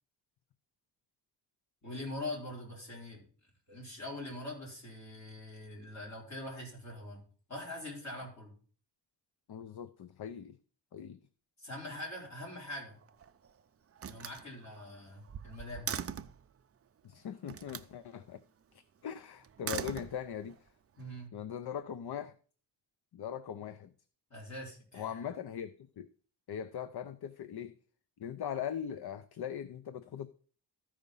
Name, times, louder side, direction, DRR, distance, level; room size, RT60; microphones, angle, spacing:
voice 1, 1.8-3.2 3.7-7.2 7.5-8.5 11.6-13.0 14.1-16.0 21.0-21.3 24.3-25.2, left 1 dB, 40° left, 5.0 m, -43 dB
voice 2, 9.5-10.6 10.9-11.2 17.0-18.4 18.7-20.6 21.3-22.4 23.1-23.9 24.9-26.1 26.5-27.8 28.2-30.3, left 8 dB, 65° left, 0.6 m, -40 dB
Slam, 12.9-13.5 14.0-16.4 17.5-17.9 19.4-20.6, right 7 dB, 35° right, 0.4 m, -41 dB
14.0 x 5.1 x 5.4 m
wide cardioid pair, 160°, 42 cm